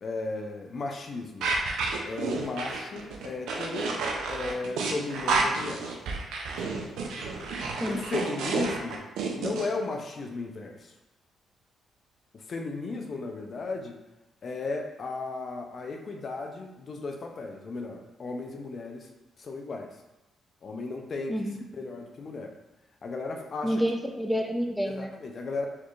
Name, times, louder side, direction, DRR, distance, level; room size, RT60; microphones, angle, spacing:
voice 1, 0.0-1.6 2.0-4.0 4.3-5.9 6.6-6.8 7.9-9.1 9.4-10.9 12.3-14.0 14.4-19.1 19.4-20.0 20.6-21.4 21.7-22.5 23.0-23.8 24.8-25.7, left 3 dB, 55° left, 3 dB, 0.5 m, -35 dB
sound 1, 1.4-9.7, right 4 dB, 80° right, 0.5 m, -30 dB
voice 2, 21.3-21.6 23.6-25.1, equal, ahead, 3 dB, 0.5 m, -28 dB
4.4 x 2.9 x 2.4 m, 0.97 s
supercardioid pair, 60°, 0 cm